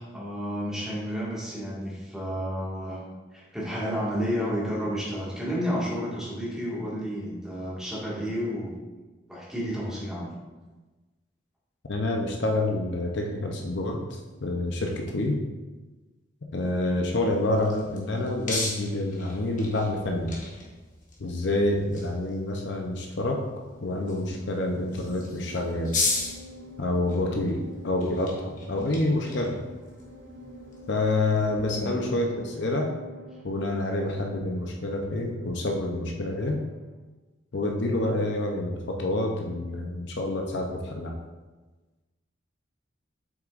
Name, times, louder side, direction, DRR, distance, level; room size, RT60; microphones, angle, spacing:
voice 1, 0.0-3.0 3.3-8.7 9.3-10.3 31.8-32.0, equal, 5° right, -8 dB, 1.8 m, -31 dB
voice 2, 11.9-15.4 16.5-20.3 21.2-23.5 23.8-26.0 26.8-27.6 27.8-29.6 30.9-32.9 33.4-36.6 37.5-41.1, left 2 dB, 65° left, 1 dB, 0.7 m, -27 dB
sound 1, 17.2-31.6, left 3 dB, 40° left, 1.3 m, -37 dB
sound 2, 23.7-37.0, equal, 55° right, 1.3 m, -48 dB
7.5 x 6.0 x 2.5 m, 1.2 s
head